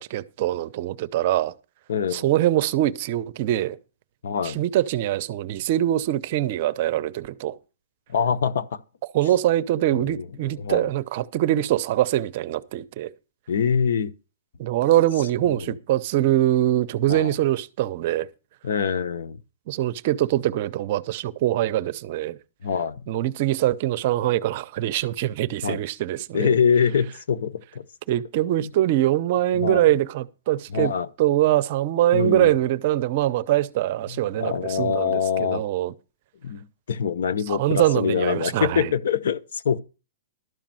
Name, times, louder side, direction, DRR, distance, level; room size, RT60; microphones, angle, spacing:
voice 1, 0.0-1.5 2.1-3.8 4.4-7.6 9.1-13.1 14.6-18.3 19.7-22.4 23.1-26.5 28.1-30.9 31.2-35.9 37.5-38.9, right 13 dB, 45° right, 0.7 m, -23 dB
voice 2, 1.9-2.3 4.2-4.6 8.1-8.8 9.9-10.9 13.5-14.1 15.4-15.8 17.1-17.3 18.6-19.4 22.6-23.1 25.6-25.8 26.3-27.8 29.5-29.9 30.7-31.1 32.1-32.6 34.1-35.6 36.4-39.8, left 7 dB, 75° left, 0.8 m, -25 dB
12.5 x 5.2 x 7.5 m
hypercardioid pair, 160°, 0 cm